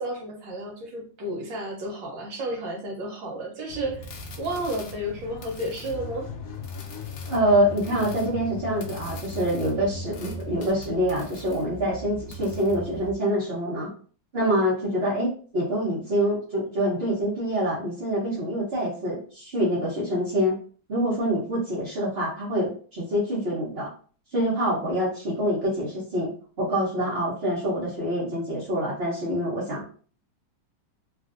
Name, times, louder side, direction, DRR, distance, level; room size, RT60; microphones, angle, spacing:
voice 1, 0.0-4.1 4.4-6.3, right 1 dB, 70° right, 0 dB, 1.5 m, -32 dB
sound 1, 3.7-13.1, left 3 dB, 80° left, 0.7 m, -38 dB
voice 2, 7.3-13.9 14.3-20.6 20.9-23.9 24.3-26.3 26.6-29.8, equal, 40° right, -9 dB, 0.9 m, -26 dB
3.2 x 2.5 x 2.5 m, 0.42 s
omnidirectional pair, 2.2 m